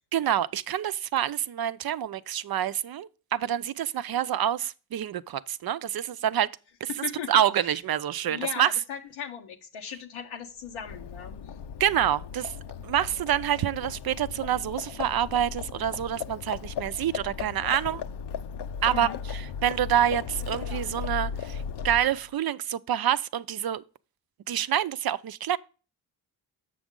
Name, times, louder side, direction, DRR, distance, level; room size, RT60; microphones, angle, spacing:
voice 1, 0.1-6.5 6.8-6.9 7.3-8.7 11.8-12.5 12.8-18.0 18.8-23.8 24.5-25.6, right 10 dB, 50° right, 0.5 m, -27 dB
voice 2, 6.9-7.3 8.3-11.5 18.9-19.2, left 8 dB, 90° left, 0.8 m, -38 dB
Livestock farm animals working animals, 10.7-22.3, left 7 dB, 60° left, 0.6 m, -36 dB
7.7 x 6.1 x 3.7 m
cardioid pair, 55°, 46 cm